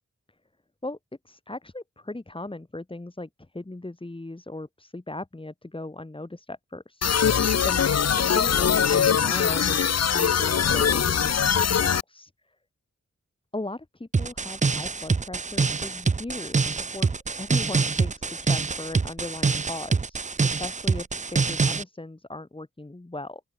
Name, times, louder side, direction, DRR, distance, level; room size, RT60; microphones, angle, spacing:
voice 1, 1.2-7.0 7.6-9.8 10.1-12.5 13.5-23.4, left 2 dB, 20° left, 1.6 m, -38 dB
sound 1, 7.0-12.0, left 7 dB, 60° left, 0.7 m, -22 dB
sound 2, 14.1-21.8, right 4 dB, 25° right, 0.5 m, -25 dB
open air
wide cardioid pair, 105°, 29 cm